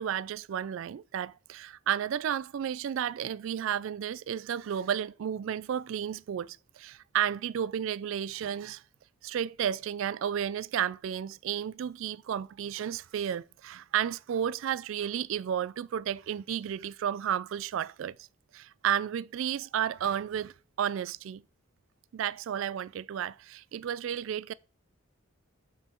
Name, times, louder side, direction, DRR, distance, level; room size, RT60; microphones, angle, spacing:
voice 1, 0.0-8.8 9.2-18.3 18.5-21.4 22.1-24.5, right 9 dB, 65° right, 0.3 m, -32 dB
6.3 x 5.9 x 4.5 m
head